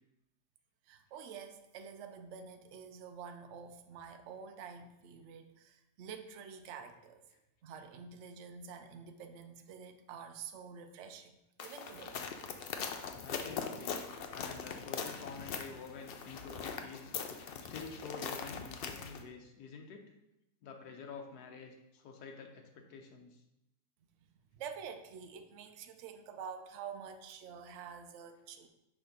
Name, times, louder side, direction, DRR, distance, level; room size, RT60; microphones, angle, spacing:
voice 1, 0.9-7.2 7.6-12.2 24.5-28.7, right 6 dB, 60° right, 7 dB, 0.8 m, -48 dB
sound 1, 11.6-19.2, left 6 dB, 70° left, 0.5 m, -41 dB
voice 2, 13.2-14.0 14.3-17.1 17.7-20.0 20.6-23.4, left 4 dB, 85° left, 2 dB, 1.3 m, -48 dB
6.3 x 3.4 x 5.2 m, 0.89 s
omnidirectional pair, 1.6 m